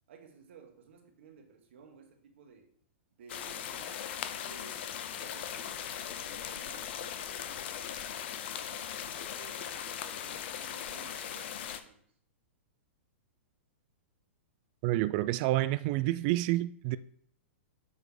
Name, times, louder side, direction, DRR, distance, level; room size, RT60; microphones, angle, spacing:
voice 1, 0.1-2.7 3.2-4.1 4.4-8.8 9.1-12.0, right 5 dB, 65° right, 1.7 m, -55 dB
sound 1, 3.3-11.8, left 9 dB, 60° left, 0.7 m, -39 dB
voice 2, 14.8-17.0, right 16 dB, 45° right, 0.3 m, -28 dB
7.3 x 4.1 x 5.0 m
hypercardioid pair, 125°, 7 cm